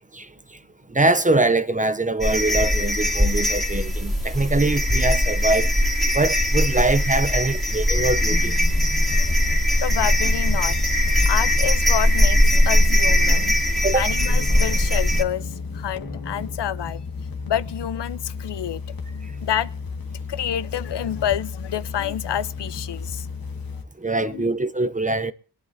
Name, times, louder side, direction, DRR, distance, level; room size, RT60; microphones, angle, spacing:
voice 1, 0.9-5.7 6.1-8.5 13.8-14.1 24.0-25.3, right 2 dB, 20° right, 0.6 m, -23 dB
sound 1, 2.2-15.2, equal, ahead, 2.7 m, -20 dB
sound 2, 7.9-23.8, left 4 dB, 55° left, 1.7 m, -33 dB
voice 2, 9.8-10.9 11.3-13.6 13.9-17.0 17.5-18.8 19.4-19.7 20.3-23.3 24.2-24.5, left 10 dB, 70° left, 0.7 m, -28 dB
24.5 x 11.0 x 2.7 m
wide cardioid pair, 135°, 43 cm